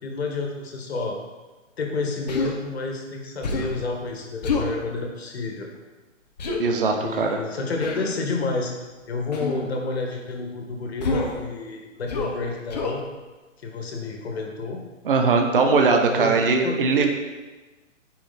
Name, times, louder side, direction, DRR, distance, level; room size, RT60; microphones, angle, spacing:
voice 1, 0.0-1.2 1.8-5.7 7.0-8.7 9.1-13.0 13.6-14.8 16.0-16.3 16.6-16.8, left 3 dB, 50° left, 1 dB, 1.9 m, -30 dB
Human voice, 2.3-2.5 3.4-3.8 4.4-4.7 6.4-6.6 7.8-8.1 9.3-9.6 11.0-11.4 12.1-12.4 12.7-13.0, left 3 dB, 30° left, 1.0 m, -27 dB
voice 2, 6.6-7.4 15.0-17.1, right 4 dB, 45° right, 3 dB, 0.9 m, -20 dB
9.8 x 5.7 x 4.2 m, 1.2 s
hypercardioid pair, 170°, 39 cm